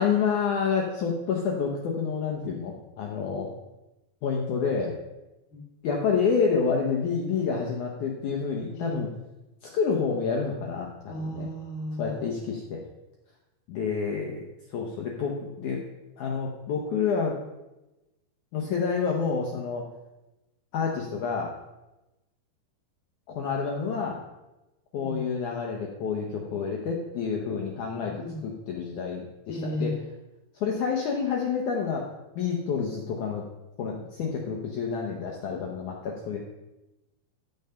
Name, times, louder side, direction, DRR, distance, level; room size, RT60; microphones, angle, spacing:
voice 1, 0.0-3.5 4.2-4.9 5.8-9.1 9.6-11.5 12.0-12.8 13.7-14.4 14.7-15.8 16.2-17.4 18.5-19.8 20.7-21.5 23.3-24.2 24.9-28.1 28.4-29.9 30.5-32.1 32.4-33.4 33.8-36.4, left 5 dB, 70° left, 0 dB, 2.0 m, -28 dB
voice 2, 11.1-12.2 25.0-25.2 28.0-28.4 29.5-30.0, equal, 30° left, -1 dB, 1.5 m, -34 dB
11.0 x 7.2 x 5.6 m, 1.0 s
omnidirectional pair, 4.5 m